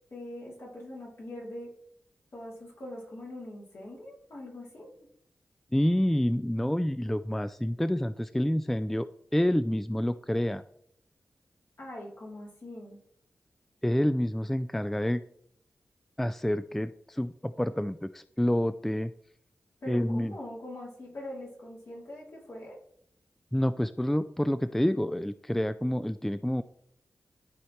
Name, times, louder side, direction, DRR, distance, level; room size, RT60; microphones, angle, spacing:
voice 1, 0.1-1.7 2.3-5.1 11.8-13.0 19.8-22.8, left 1 dB, 65° left, -4 dB, 2.9 m, -42 dB
voice 2, 5.7-10.6 13.8-15.2 16.2-19.1 19.9-20.3 23.5-26.6, equal, 5° left, 13 dB, 0.3 m, -28 dB
12.5 x 4.4 x 3.1 m, 0.69 s
cardioid pair, 55°, 5 cm